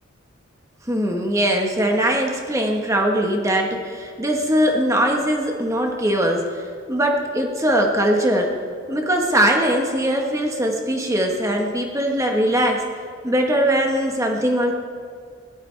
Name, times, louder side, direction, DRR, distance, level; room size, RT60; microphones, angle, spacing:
voice 1, 0.9-6.4 6.9-8.5 8.9-12.8 13.2-14.7, right 1 dB, 15° right, 2 dB, 1.3 m, -21 dB
17.5 x 12.0 x 3.4 m, 2.3 s
head